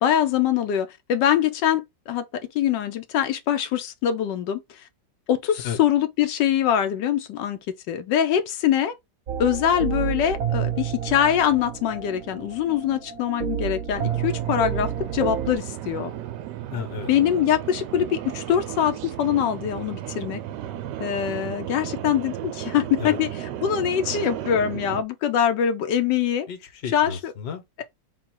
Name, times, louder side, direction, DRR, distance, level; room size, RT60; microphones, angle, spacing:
voice 1, 0.0-2.2 2.5-4.8 5.3-8.9 9.4-16.1 17.1-20.4 21.0-26.5 26.9-27.3, left 9 dB, 75° left, 1.3 m, -23 dB
sound 1, 9.3-15.6, right 9 dB, 55° right, 1.2 m, -29 dB
sound 2, 13.9-25.0, right 12 dB, 75° right, 1.2 m, -34 dB
voice 2, 16.7-17.1 23.0-23.2 26.5-27.8, left 7 dB, 45° left, 0.9 m, -33 dB
3.7 x 2.3 x 4.5 m
omnidirectional pair, 1.9 m